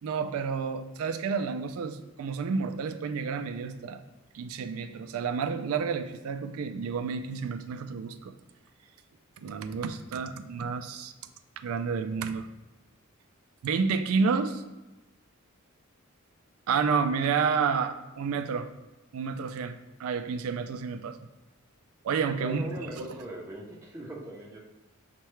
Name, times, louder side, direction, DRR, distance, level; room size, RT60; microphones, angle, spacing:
voice 1, 0.0-4.0 4.3-8.3 9.4-11.1 11.6-12.5 13.6-14.6 16.7-18.7 19.1-21.2 22.0-22.6 23.0-23.1, right 5 dB, 75° right, 9 dB, 0.3 m, -30 dB
voice 2, 22.4-24.6, equal, 10° right, -3 dB, 0.5 m, -40 dB
5.5 x 2.2 x 3.0 m, 1.0 s
head